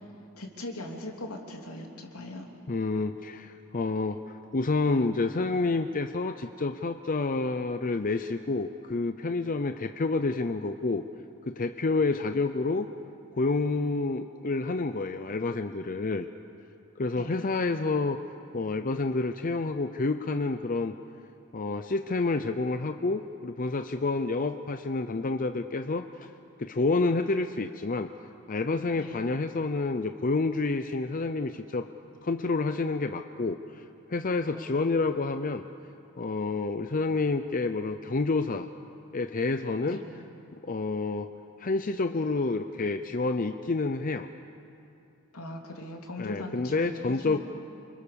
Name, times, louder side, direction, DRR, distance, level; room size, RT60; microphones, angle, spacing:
voice 1, 0.4-2.5 17.1-17.5 28.9-29.3 34.5-35.0 39.8-40.0 45.3-47.4, left 1 dB, 80° left, 1 dB, 3.3 m, -40 dB
voice 2, 2.7-11.0 11.5-12.9 13.3-16.3 17.0-18.2 18.5-20.9 21.5-26.3 26.6-28.1 28.5-31.9 32.2-33.8 34.1-35.6 36.2-38.7 39.1-40.0 40.6-41.3 41.6-44.3 46.2-47.4, left 3 dB, 40° left, 9 dB, 0.6 m, -29 dB
28.5 x 25.0 x 7.0 m, 2.6 s
head